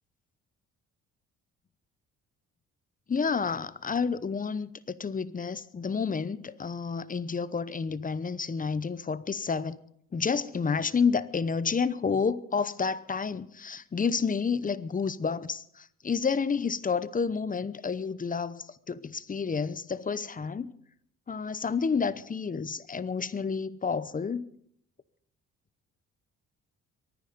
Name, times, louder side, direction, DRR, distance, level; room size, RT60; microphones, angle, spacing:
voice 1, 3.1-9.8 10.1-20.7 21.3-24.5, left 5 dB, 25° left, 0.8 m, -30 dB
23.5 x 9.8 x 5.3 m
cardioid pair, 90°, 30 cm